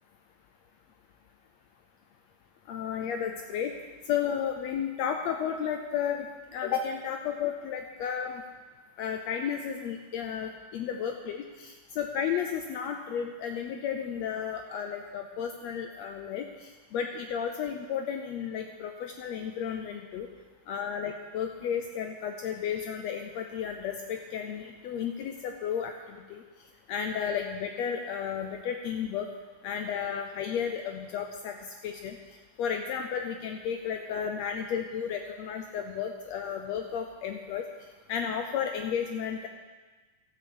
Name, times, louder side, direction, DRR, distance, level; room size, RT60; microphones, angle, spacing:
voice 1, 2.7-3.7 4.1-6.3 6.5-8.4 9.0-20.3 20.7-26.4 26.9-29.3 29.6-31.6 31.8-32.2 32.6-37.6 38.1-39.5, left 8 dB, 75° left, 4 dB, 1.6 m, -33 dB
13.0 x 6.6 x 7.2 m, 1.3 s
omnidirectional pair, 3.7 m